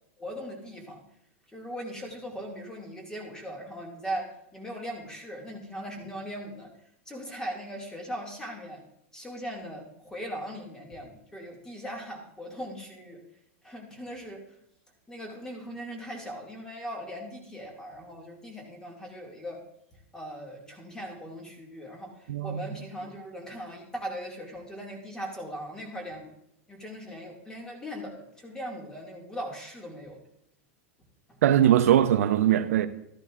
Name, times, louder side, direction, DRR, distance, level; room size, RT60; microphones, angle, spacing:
voice 1, 0.2-1.0 1.5-6.7 7.1-8.8 9.1-13.2 13.6-14.4 15.1-19.6 20.1-26.4 26.7-30.2 31.3-31.4, equal, 10° left, 2.2 m, -39 dB
voice 2, 22.3-22.6 31.4-32.9, right 11 dB, 85° right, 0.7 m, -21 dB
13.5 x 13.5 x 2.5 m
supercardioid pair, 140°, 8 cm